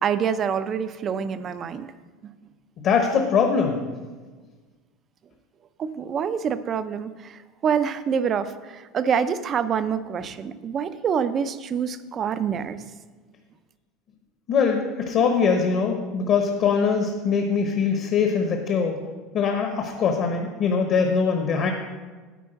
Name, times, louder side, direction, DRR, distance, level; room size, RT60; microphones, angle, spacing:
voice 1, 0.0-1.9 2.2-2.3 5.8-12.8, right 7 dB, 25° right, 13 dB, 0.4 m, -26 dB
voice 2, 2.8-3.9 14.5-19.0 19.3-21.7, left 5 dB, 40° left, 4 dB, 0.9 m, -22 dB
10.0 x 4.4 x 7.8 m, 1.4 s
cardioid pair, 160°, 0 cm